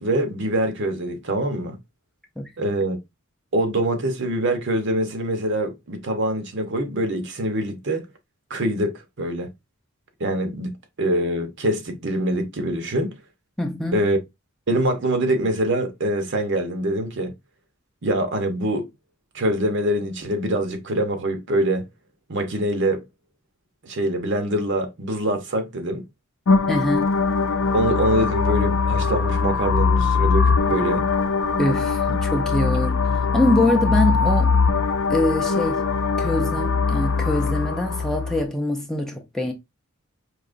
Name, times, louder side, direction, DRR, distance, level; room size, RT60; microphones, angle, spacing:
voice 1, 0.0-1.8 2.6-3.0 3.5-8.0 8.5-9.5 10.2-10.7 11.0-13.1 13.9-14.2 14.7-17.3 18.0-18.9 19.3-21.8 22.3-23.0 23.8-26.0 27.7-31.1 32.1-32.2, right 1 dB, 55° right, 0.8 m, -24 dB
voice 2, 13.6-14.0 26.7-27.1 31.6-34.6 35.1-35.9 36.2-39.5, left 1 dB, ahead, 0.5 m, -24 dB
sound 1, 26.5-38.4, left 4 dB, 65° left, 0.5 m, -21 dB
4.8 x 2.9 x 2.5 m
head